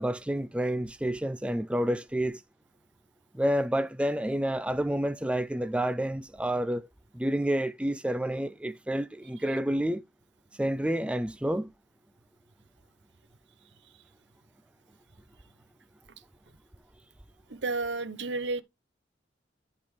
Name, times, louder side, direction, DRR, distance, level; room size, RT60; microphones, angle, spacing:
voice 1, 0.0-2.4 3.3-6.9 7.1-10.0 10.6-11.7, right 1 dB, 5° right, 0.4 m, -29 dB
voice 2, 17.5-18.6, right 3 dB, 70° right, 0.9 m, -31 dB
11.5 x 4.3 x 3.2 m
head